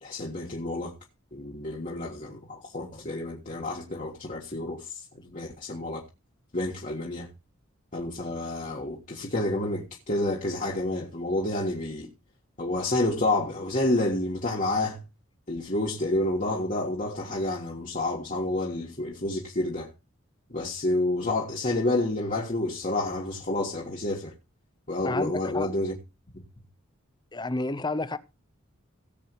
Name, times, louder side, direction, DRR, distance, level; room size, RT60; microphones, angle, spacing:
voice 1, 0.0-0.9 1.3-6.0 6.5-7.3 7.9-12.1 12.6-15.0 15.5-19.9 20.5-24.3 24.9-25.9 26.3-26.4, left 2 dB, 40° left, 1.6 m, -29 dB
voice 2, 25.0-25.7 27.3-28.2, left 2 dB, 20° left, 0.7 m, -30 dB
17.5 x 7.6 x 3.0 m
head